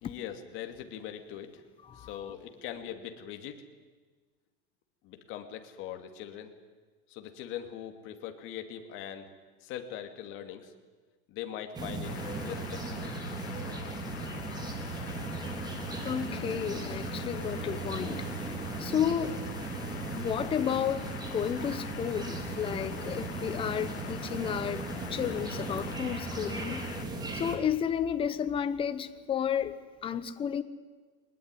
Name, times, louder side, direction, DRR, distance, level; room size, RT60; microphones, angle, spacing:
voice 1, 0.0-1.6 1.9-3.6 5.0-6.5 7.1-9.3 9.6-10.7 11.3-12.1 12.4-13.1, left 10 dB, 40° left, 2.7 m, -41 dB
voice 2, 1.9-2.3 16.0-19.4 20.1-26.8 27.3-30.6, left 8 dB, 15° left, 0.9 m, -32 dB
sound 1, 11.7-27.6, right 3 dB, 10° right, 2.9 m, -37 dB
sound 2, 12.0-27.0, left 10 dB, 80° left, 2.9 m, -46 dB
22.0 x 20.0 x 9.8 m
supercardioid pair, 160°, 32 cm